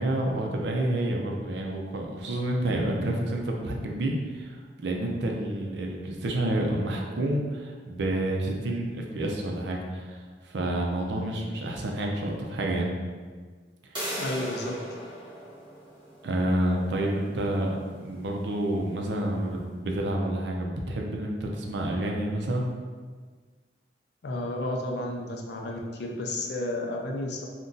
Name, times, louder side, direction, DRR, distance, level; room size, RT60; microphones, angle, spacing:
voice 1, 0.0-12.9 16.2-22.7, right 1 dB, 70° right, 0 dB, 0.5 m, -29 dB
sound 1, 13.9-19.5, equal, 30° right, 1.0 m, -40 dB
voice 2, 14.2-14.8 24.2-27.5, left 1 dB, 70° left, 1 dB, 0.5 m, -32 dB
2.6 x 2.2 x 3.8 m, 1.5 s
head